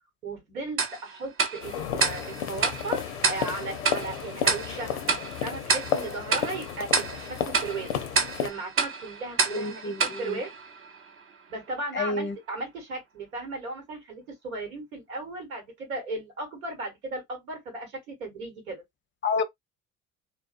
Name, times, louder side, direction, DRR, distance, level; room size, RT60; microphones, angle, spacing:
voice 1, 0.2-5.0 5.4-7.9 8.4-10.5 11.5-18.8, right 2 dB, 90° right, 1.3 m, -36 dB
Tick-tock, 0.8-11.2, right 4 dB, 35° right, 0.6 m, -30 dB
sound 1, 1.6-8.5, left 9 dB, 90° left, 0.5 m, -33 dB
voice 2, 9.5-10.4 11.9-12.3 19.2-19.4, left 3 dB, 30° left, 0.5 m, -29 dB
2.7 x 2.2 x 2.4 m
hypercardioid pair, 55°, 40 cm